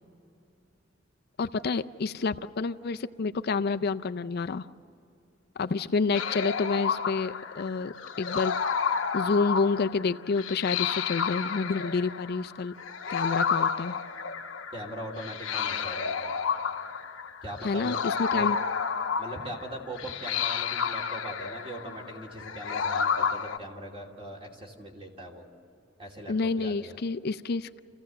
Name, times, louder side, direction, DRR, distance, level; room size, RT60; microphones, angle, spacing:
voice 1, 1.4-4.7 5.6-8.6 9.1-12.7 13.1-14.0 17.6-18.6 26.3-27.8, left 4 dB, 55° left, 10 dB, 0.5 m, -29 dB
sound 1, 6.1-23.6, left 6 dB, 80° left, 0.9 m, -31 dB
voice 2, 14.7-16.2 17.4-17.9 18.3-18.5 19.2-25.4 26.0-27.0, right 1 dB, 30° right, 0 dB, 2.9 m, -40 dB
28.0 x 15.5 x 7.7 m, 2.7 s
head